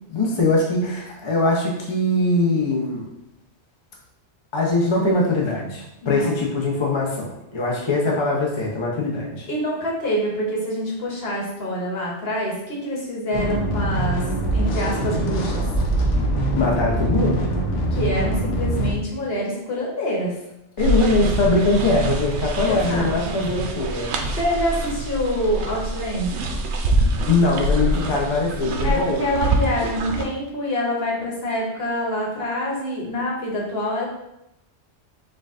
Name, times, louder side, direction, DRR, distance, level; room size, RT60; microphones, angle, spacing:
voice 1, 0.0-3.1 4.5-9.5 16.5-17.4 20.8-24.1 27.3-29.3, left 2 dB, 30° left, -2 dB, 0.6 m, -22 dB
voice 2, 6.0-6.4 9.5-14.2 14.5-15.6 17.9-20.4 22.6-23.4 23.9-24.1 24.4-26.4 28.8-34.1, left 1 dB, 60° left, -3 dB, 1.2 m, -26 dB
sound 1, 13.3-18.9, right 1 dB, 85° left, 1.1 m, -23 dB
sound 2, 20.8-30.3, right 2 dB, 70° right, 0.8 m, -25 dB
4.4 x 2.5 x 3.6 m, 0.84 s
omnidirectional pair, 1.2 m